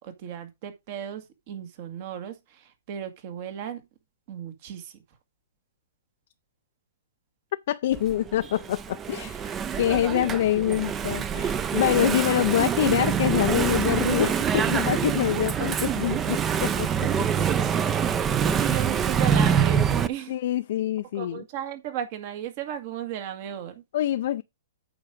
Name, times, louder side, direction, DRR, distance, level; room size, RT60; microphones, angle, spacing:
voice 1, 0.0-3.8 4.3-5.0 15.0-15.6 18.4-20.4 21.1-23.8, right 10 dB, 45° right, 1.9 m, -35 dB
voice 2, 7.7-17.1 20.3-21.4 23.9-24.4, left 12 dB, 60° left, 0.5 m, -25 dB
Engine / Mechanisms, 7.9-20.1, right 7 dB, 20° right, 0.6 m, -25 dB
8.7 x 4.9 x 5.1 m
hypercardioid pair, 135°, 0 cm